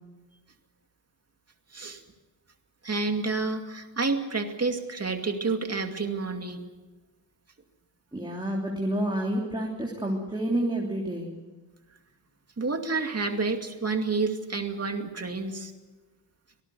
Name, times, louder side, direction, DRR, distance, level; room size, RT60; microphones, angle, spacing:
voice 1, 2.8-6.6 12.6-15.7, right 3 dB, 35° right, 5 dB, 2.4 m, -29 dB
voice 2, 8.1-11.3, right 1 dB, 10° right, -2 dB, 3.1 m, -29 dB
25.0 x 18.5 x 7.0 m, 1.3 s
wide cardioid pair, 120°, 43 cm